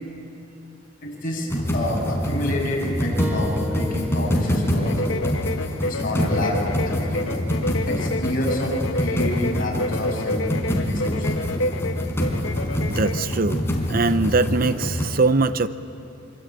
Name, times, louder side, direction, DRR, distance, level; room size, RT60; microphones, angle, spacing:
voice 1, 1.0-1.5 1.7-5.2 5.8-7.4 7.8-10.4 10.8-11.4, left 1 dB, 45° left, -2 dB, 7.5 m, -29 dB
sound 1, 1.5-15.1, equal, 15° left, 4.2 m, -25 dB
sound 2, 3.2-8.3, left 1 dB, 10° right, 1.6 m, -38 dB
sound 3, 4.8-13.4, left 2 dB, 80° left, 1.1 m, -29 dB
voice 2, 12.8-13.6 13.9-15.7, right 3 dB, 45° right, 12 dB, 0.7 m, -21 dB
25.0 x 25.0 x 9.1 m, 2.7 s
head